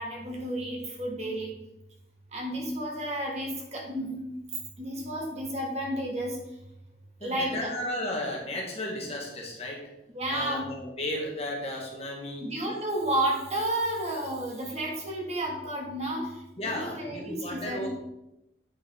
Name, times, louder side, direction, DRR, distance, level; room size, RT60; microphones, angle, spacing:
voice 1, 0.0-1.6 2.3-4.3 4.8-6.4 7.2-7.7 10.1-10.7 12.4-17.9, right 1 dB, 40° right, -1 dB, 1.8 m, -32 dB
voice 2, 7.2-9.9 10.3-12.5 16.6-18.0, left 1 dB, 35° left, -1 dB, 1.6 m, -34 dB
8.7 x 6.5 x 3.7 m, 0.91 s
head